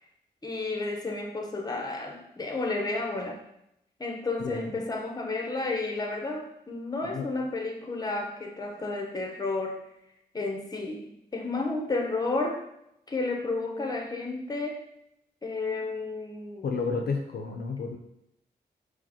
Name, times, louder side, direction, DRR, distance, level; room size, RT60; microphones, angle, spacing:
voice 1, 0.4-3.4 4.0-9.8 10.3-12.6 13.1-14.8 15.4-16.7, left 3 dB, 20° left, 2 dB, 0.7 m, -32 dB
voice 2, 4.4-4.8 7.0-7.3 16.6-18.0, left 4 dB, 65° left, 2 dB, 0.4 m, -31 dB
4.7 x 2.0 x 2.8 m, 0.81 s
cardioid pair, 60°, 18 cm